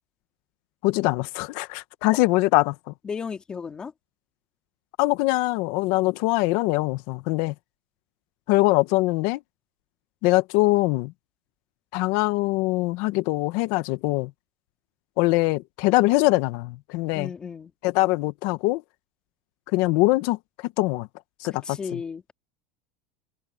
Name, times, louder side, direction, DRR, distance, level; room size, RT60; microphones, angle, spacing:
voice 1, 0.8-2.9 5.0-7.5 8.5-9.4 10.2-11.1 11.9-14.3 15.2-17.3 17.8-18.8 19.7-21.1 21.4-22.0, left 21 dB, 55° left, 0.9 m, -23 dB
voice 2, 3.0-3.9 17.1-17.7 21.6-22.3, left 6 dB, 15° left, 3.3 m, -34 dB
open air
supercardioid pair, 165°, 5 cm